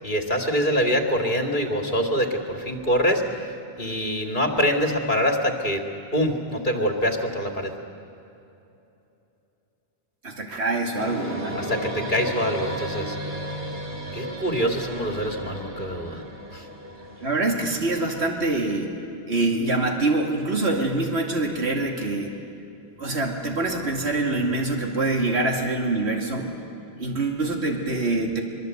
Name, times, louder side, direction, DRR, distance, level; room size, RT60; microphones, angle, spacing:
voice 1, 0.0-5.8 6.1-7.7 11.5-13.2 14.1-16.2 16.5-16.7, equal, 50° left, 3 dB, 2.6 m, -25 dB
voice 2, 10.2-11.6 17.2-18.9 19.3-22.3 23.0-26.5 27.0-28.4, right 2 dB, 80° right, 1 dB, 2.7 m, -25 dB
sound 1, 10.9-18.3, equal, 15° right, 2.9 m, -34 dB
23.5 x 23.0 x 8.1 m, 2.8 s
omnidirectional pair, 1.1 m